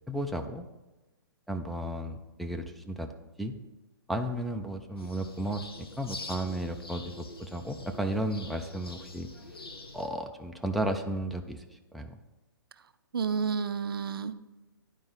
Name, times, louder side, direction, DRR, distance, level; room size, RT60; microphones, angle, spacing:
voice 1, 0.1-0.7 1.5-3.1 3.4-3.6 4.1-9.3 9.9-12.2, right 1 dB, ahead, 3 dB, 0.4 m, -34 dB
sound 1, 5.0-10.1, left 2 dB, 85° left, 1.2 m, -45 dB
voice 2, 13.1-14.3, right 6 dB, 75° right, 13 dB, 0.5 m, -30 dB
9.7 x 4.5 x 5.5 m, 1.1 s
hypercardioid pair, 130°, 12 cm